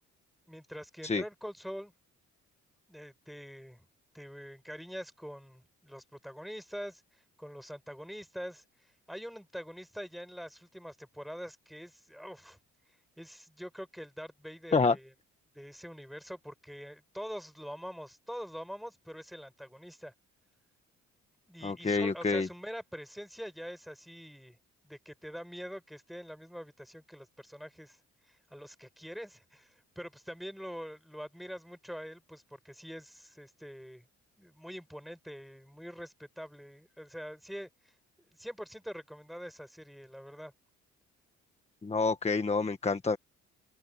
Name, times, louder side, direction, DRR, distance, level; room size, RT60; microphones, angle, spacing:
voice 1, 0.5-1.9 2.9-3.9 4.1-12.6 13.2-15.1 15.5-20.1 21.5-24.6 24.8-28.0 28.3-34.0 34.4-37.9 38.4-40.5, equal, ahead, 6.1 m, -44 dB
voice 2, 21.6-22.5 41.8-43.2, left 4 dB, 20° left, 1.5 m, -28 dB
open air
cardioid pair, 90°, 30 cm